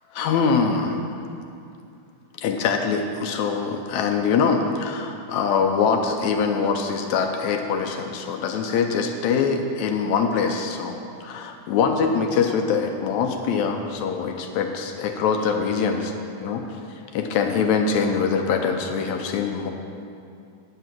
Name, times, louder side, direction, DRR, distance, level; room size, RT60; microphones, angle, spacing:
voice 1, 0.1-1.0 2.4-16.1 16.4-19.7, left 5 dB, 75° left, 4 dB, 1.8 m, -23 dB
10.0 x 8.2 x 6.0 m, 2.5 s
omnidirectional pair, 3.8 m